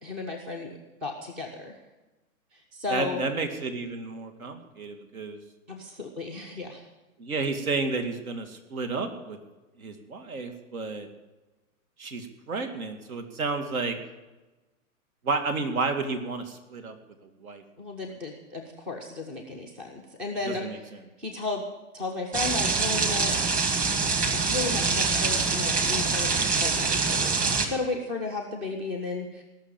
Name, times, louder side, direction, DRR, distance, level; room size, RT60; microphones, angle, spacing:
voice 1, 0.0-0.7 1.0-1.8 2.5-3.2 5.7-6.8 17.8-20.9 21.2-21.7 21.9-23.3 24.5-29.4, left 3 dB, ahead, 3 dB, 0.4 m, -34 dB
voice 2, 2.9-5.4 7.2-9.4 9.8-11.1 12.0-14.0 15.2-16.9 17.2-17.6 20.5-21.0, right 4 dB, 75° right, 7 dB, 2.4 m, -31 dB
sound 1, 22.3-27.7, right 4 dB, 20° right, 1.4 m, -25 dB
18.5 x 6.2 x 8.9 m, 1.1 s
hypercardioid pair, 130°, 43 cm